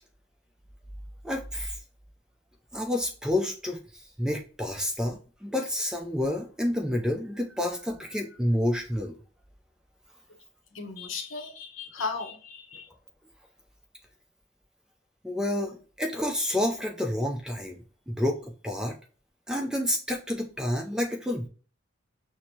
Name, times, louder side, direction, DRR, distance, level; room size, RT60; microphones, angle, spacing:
voice 1, 1.2-1.8 2.7-3.8 4.2-9.2 15.2-17.8 18.1-18.9 19.5-21.5, left 1 dB, 5° right, 2 dB, 0.3 m, -29 dB
voice 2, 10.7-12.9, left 4 dB, 70° left, 4 dB, 0.7 m, -36 dB
6.0 x 2.1 x 2.7 m, 0.39 s
head